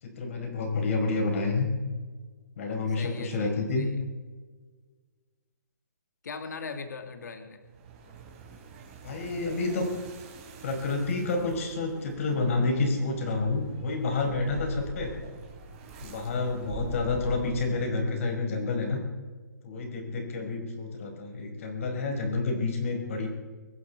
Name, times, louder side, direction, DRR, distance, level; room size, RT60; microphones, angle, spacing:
voice 1, 0.0-1.7 2.6-3.9 9.0-9.9 10.6-15.1 16.0-19.0 19.6-23.3, left 3 dB, 45° left, 2 dB, 5.1 m, -29 dB
voice 2, 3.0-3.9 6.2-7.6, left 5 dB, 70° left, 7 dB, 2.1 m, -39 dB
sound 1, 7.7-18.1, right 3 dB, 25° right, 3.8 m, -44 dB
24.5 x 11.0 x 4.6 m, 1.4 s
hypercardioid pair, 160°, 10 cm